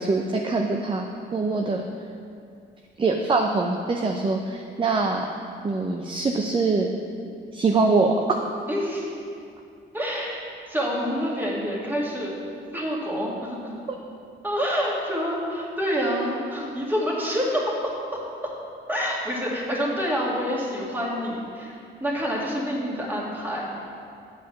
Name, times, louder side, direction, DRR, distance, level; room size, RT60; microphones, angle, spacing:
voice 1, 0.0-1.8 3.0-5.3 5.6-6.9 7.5-8.2 13.9-14.0, right 3 dB, 25° right, 2 dB, 0.6 m, -23 dB
voice 2, 8.7-9.1 9.9-12.3 12.7-13.8 14.4-18.5 18.9-23.7, equal, 10° right, -4 dB, 2.1 m, -27 dB
8.3 x 4.9 x 6.8 m, 2.5 s
cardioid pair, 90°, 20 cm